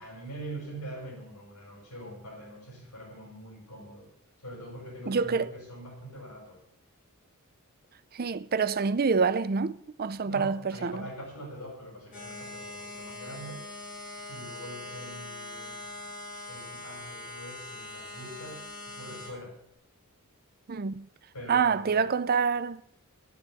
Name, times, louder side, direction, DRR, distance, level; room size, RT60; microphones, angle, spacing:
voice 1, 0.0-4.1 4.4-6.6 10.2-13.7 14.3-15.9 16.5-19.6 21.3-22.1, right 1 dB, 85° left, 5.7 m, -43 dB
voice 2, 5.1-5.5 8.1-11.0 20.7-21.1 21.5-22.8, right 5 dB, 45° right, 0.6 m, -27 dB
sound 1, 12.1-19.3, left 2 dB, 40° left, 3.8 m, -42 dB
10.0 x 9.5 x 9.0 m
head